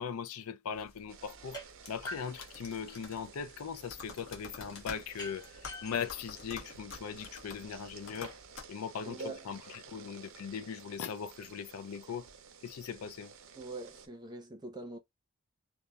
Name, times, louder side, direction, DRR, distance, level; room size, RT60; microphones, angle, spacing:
voice 1, 0.0-1.6 1.9-8.4 8.7-12.3 12.6-13.3, left 7 dB, 85° left, 0.4 m, -40 dB
sound 1, 0.7-8.6, left 4 dB, 70° left, 0.8 m, -50 dB
sound 2, 1.1-14.1, right 5 dB, 70° right, 0.5 m, -53 dB
sound 3, 1.5-1.7 2.0-3.2 5.2-7.2, left 1 dB, 20° left, 1.1 m, -46 dB
voice 2, 9.0-9.5 13.6-15.0, right 3 dB, 20° right, 0.5 m, -43 dB
2.8 x 2.1 x 2.2 m
head